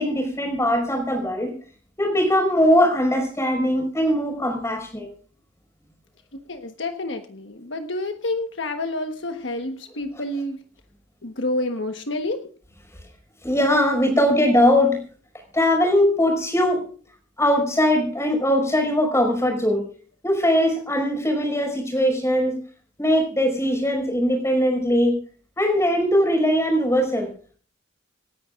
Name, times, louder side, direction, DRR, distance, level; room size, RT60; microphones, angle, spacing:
voice 1, 0.0-1.5 2.0-5.1 13.4-15.0 15.5-16.8 17.4-19.8 20.2-22.6 23.0-25.2 25.6-27.3, equal, 15° left, 3 dB, 5.5 m, -20 dB
voice 2, 6.5-10.6 11.2-12.5, left 2 dB, 65° left, 5 dB, 1.3 m, -29 dB
27.5 x 10.5 x 2.5 m, 0.43 s
head